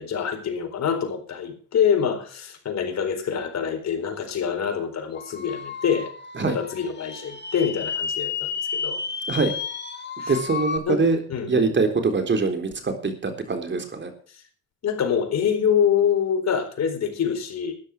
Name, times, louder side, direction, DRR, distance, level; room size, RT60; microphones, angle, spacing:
voice 1, 0.0-6.1 6.5-9.0 10.2-10.4 10.9-11.0 11.3-11.7 14.8-17.7, left 7 dB, 60° left, 4.3 m, -25 dB
sound 1, 5.1-10.8, left 6 dB, 35° left, 2.5 m, -32 dB
voice 2, 10.3-11.2 11.5-14.1, right 4 dB, 40° right, 3.7 m, -23 dB
13.0 x 10.5 x 6.2 m
cardioid pair, 90°, 30 cm